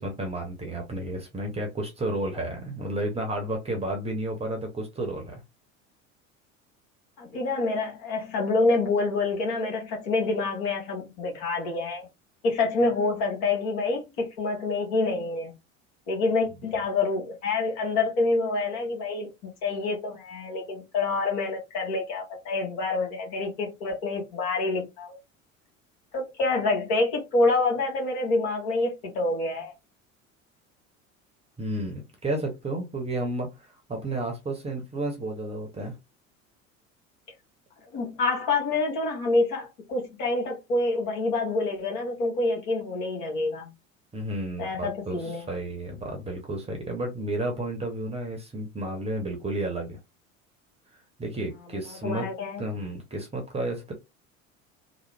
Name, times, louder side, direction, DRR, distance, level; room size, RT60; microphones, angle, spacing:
voice 1, 0.0-5.4 31.6-36.0 44.1-50.0 51.2-52.3 52.6-53.9, right 1 dB, 15° right, 0.9 m, -32 dB
voice 2, 7.2-12.1 12.4-15.5 16.1-25.2 26.1-29.7 37.9-43.7 44.6-45.5 51.9-52.6, left 3 dB, 55° left, 1.6 m, -27 dB
3.1 x 2.1 x 3.3 m
figure-of-eight pair, 70°, 40 cm